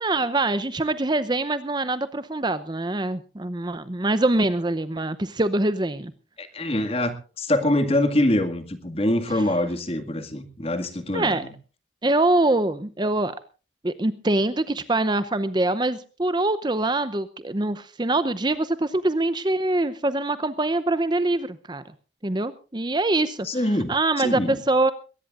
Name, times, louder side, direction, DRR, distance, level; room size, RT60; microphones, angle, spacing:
voice 1, 0.0-6.1 11.1-11.4 12.0-13.3 13.8-21.8 22.2-23.5 23.9-24.9, right 2 dB, 25° right, 13 dB, 0.7 m, -24 dB
voice 2, 6.4-11.5 23.4-23.9 24.2-24.6, left 1 dB, 30° left, 8 dB, 2.0 m, -24 dB
21.5 x 18.5 x 2.5 m, 0.35 s
head